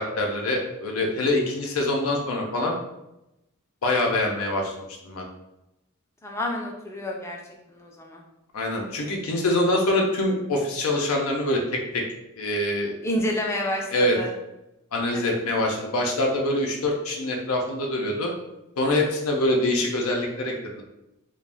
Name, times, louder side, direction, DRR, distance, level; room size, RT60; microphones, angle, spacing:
voice 1, 0.0-2.8 3.8-5.2 8.5-12.0 12.4-12.9 13.9-14.2 14.9-18.3 18.8-20.8, left 1 dB, 85° left, 0 dB, 0.6 m, -25 dB
voice 2, 6.2-7.4 7.7-8.2 13.0-14.3 15.1-15.4, left 1 dB, 10° left, 0 dB, 0.4 m, -29 dB
2.5 x 2.3 x 3.4 m, 0.90 s
head